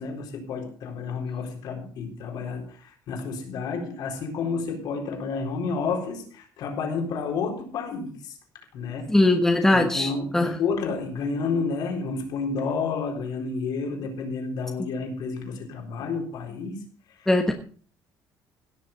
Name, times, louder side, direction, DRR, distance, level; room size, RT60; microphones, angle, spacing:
voice 1, 0.0-8.4 8.7-9.2 9.7-16.8 17.2-17.3, left 4 dB, 65° left, 4.1 m, -30 dB
voice 2, 9.1-10.5 17.3-17.5, left 2 dB, 5° left, 1.2 m, -20 dB
17.0 x 6.8 x 5.4 m
cardioid pair, 150°, 8 cm